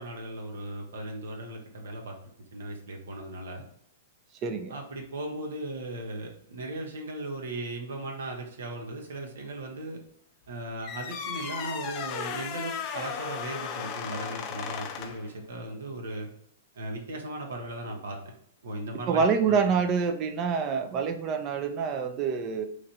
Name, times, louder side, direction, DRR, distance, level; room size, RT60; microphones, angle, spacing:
voice 1, 0.0-2.1 2.5-3.6 4.7-10.0 10.5-16.3 16.8-18.3 18.6-19.7, right 1 dB, 70° right, 1 dB, 0.8 m, -37 dB
voice 2, 4.4-4.7 19.1-22.7, right 6 dB, 35° right, 8 dB, 0.5 m, -26 dB
sound 1, 10.8-15.3, left 7 dB, 40° left, 0.4 m, -36 dB
3.1 x 2.5 x 4.1 m, 0.68 s
hypercardioid pair, 110°, 0 cm